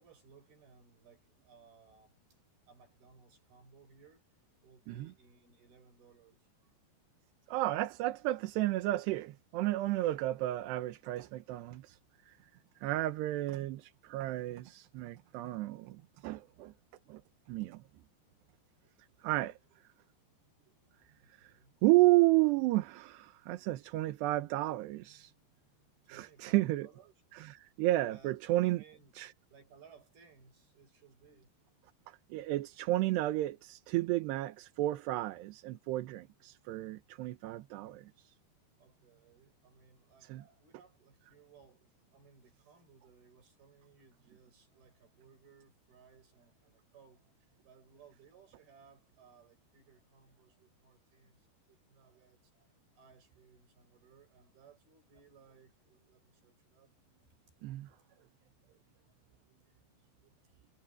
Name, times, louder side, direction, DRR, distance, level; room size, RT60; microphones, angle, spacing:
voice 1, 0.0-2.2 2.7-4.2 4.6-6.7 21.2-21.7 26.0-27.1 28.0-29.1 29.5-31.6 38.8-47.4 47.6-56.9 57.9-58.5 59.8-60.6, right 6 dB, 60° right, 9.0 m, -62 dB
voice 2, 7.5-12.0 12.3-12.4 12.8-16.7 17.1-17.2 17.5-17.8 19.2-19.6 21.4-21.5 21.8-25.3 26.1-26.9 27.3-28.8 29.2-29.3 32.1-38.3 40.2-40.4 57.6-57.9, right 18 dB, 80° right, 3.1 m, -32 dB
omnidirectional pair, 4.9 m